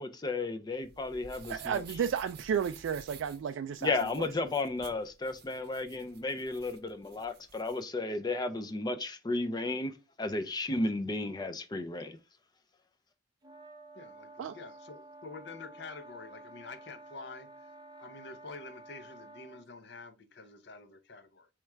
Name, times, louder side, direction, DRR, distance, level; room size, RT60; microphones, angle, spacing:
voice 1, 0.0-1.8 3.8-12.2, left 2 dB, 20° left, 0.4 m, -34 dB
sound 1, 0.7-7.8, right 6 dB, 55° right, 0.7 m, -53 dB
voice 2, 1.5-4.3 14.4-14.6, right 7 dB, 85° right, 0.3 m, -33 dB
sound 2, 13.4-19.7, right 2 dB, 20° right, 0.7 m, -51 dB
voice 3, 13.9-17.7 18.0-21.5, left 3 dB, 65° left, 0.7 m, -48 dB
4.5 x 3.2 x 3.4 m
head